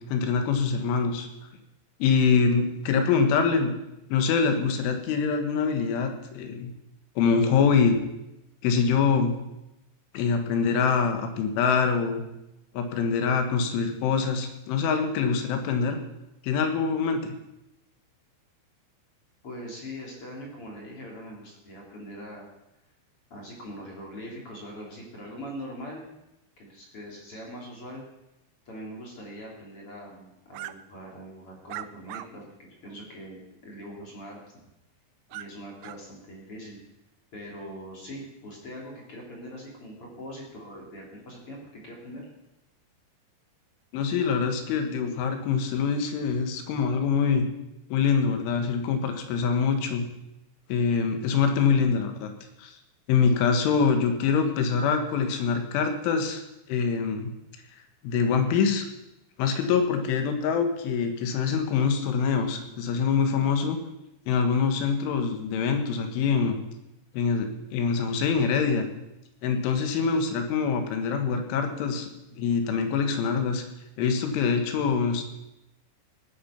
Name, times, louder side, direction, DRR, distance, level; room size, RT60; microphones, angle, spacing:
voice 1, 0.1-1.3 2.0-3.7 4.1-6.7 7.2-8.0 8.6-9.3 10.1-12.2 12.8-16.0 16.4-17.3 43.9-47.5 47.9-50.1 50.7-52.3 52.6-52.7 53.1-56.4 56.7-57.3 58.0-58.9 59.4-63.8 64.3-66.6 67.1-68.9 69.4-73.6 74.0-75.2, left 5 dB, 85° left, 6 dB, 3.9 m, -24 dB
voice 2, 19.4-22.5 23.3-26.1 26.6-28.0 28.6-34.4 35.3-36.8 37.3-42.3, equal, 35° left, -2 dB, 3.3 m, -42 dB
sound 1, 30.5-30.7 31.7-32.3 32.9-33.0 35.3-35.5 35.8-36.0, right 15 dB, 80° right, 2.8 m, -38 dB
18.0 x 9.8 x 5.8 m, 0.91 s
omnidirectional pair, 5.5 m